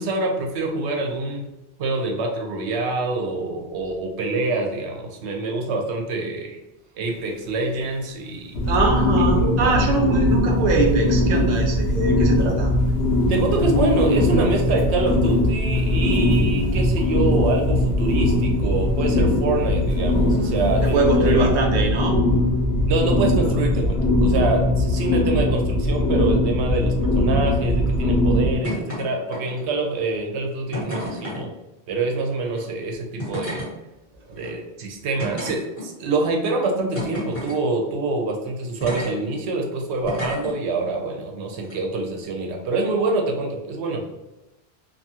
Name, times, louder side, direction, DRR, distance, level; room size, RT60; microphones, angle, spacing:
voice 1, 0.0-1.5 1.8-6.6 7.0-8.5 9.4-9.8 13.3-21.5 21.8-22.0 22.9-31.5 31.9-33.6 34.4-44.0, right 3 dB, 90° right, 2 dB, 0.9 m, -26 dB
sound 1, 7.1-21.3, left 2 dB, 40° left, 1.4 m, -32 dB
sound 2, 8.5-28.5, left 1 dB, 85° left, 0.9 m, -20 dB
voice 2, 8.7-12.7 20.8-22.2 34.3-34.4, right 2 dB, 50° right, 0 dB, 0.6 m, -22 dB
sound 3, 28.6-29.0 29.3-29.8 30.7-31.4 32.5-32.6 33.2-33.7 34.4-34.5 35.2-36.1 36.9-37.6 38.8-39.1 40.0-40.5 41.6-41.7, equal, 15° left, 1.2 m, -30 dB
2.6 x 2.3 x 2.7 m, 0.96 s
omnidirectional pair, 1.1 m